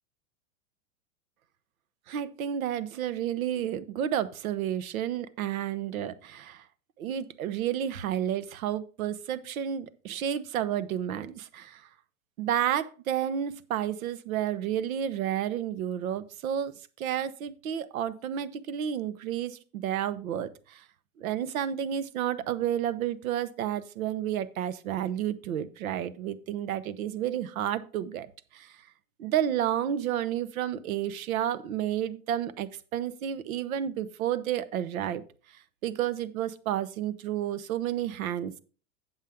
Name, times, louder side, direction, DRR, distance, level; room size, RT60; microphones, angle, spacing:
voice 1, 2.1-6.6 7.0-11.9 12.4-20.8 21.2-28.3 28.5-28.8 29.2-35.2 35.8-38.5, right 10 dB, 75° right, 1.0 m, -31 dB
8.9 x 7.4 x 3.6 m
supercardioid pair, 170°, 42 cm